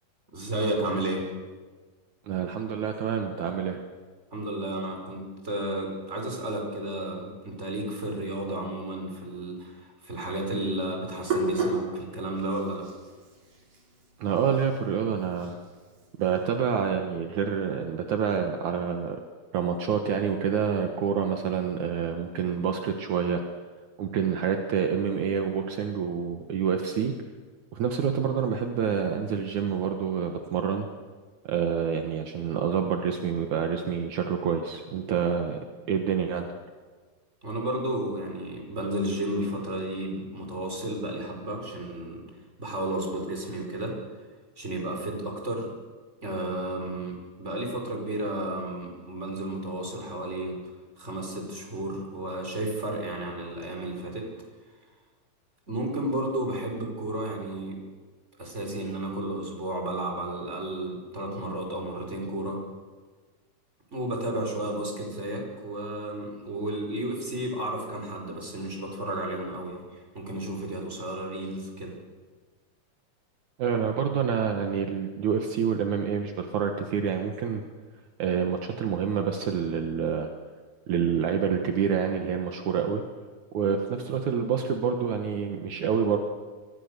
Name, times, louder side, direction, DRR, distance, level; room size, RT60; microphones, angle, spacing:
voice 1, 0.3-1.3 4.3-12.9 37.4-42.2 42.6-44.0 44.6-45.7 46.2-50.6 51.0-54.3 55.7-57.8 58.4-62.6 63.9-72.0, right 1 dB, 20° right, 1 dB, 5.4 m, -32 dB
voice 2, 2.3-3.8 14.2-15.6 16.2-19.2 19.5-23.4 24.0-27.1 27.7-30.9 31.4-35.6 35.9-36.5 73.6-77.6 78.2-80.3 80.9-83.0 83.5-86.2, right 7 dB, 70° right, 4 dB, 2.8 m, -27 dB
Hands, 10.5-16.4, right 3 dB, 90° right, 6.1 m, -34 dB
28.5 x 23.5 x 6.8 m, 1.4 s
omnidirectional pair, 3.6 m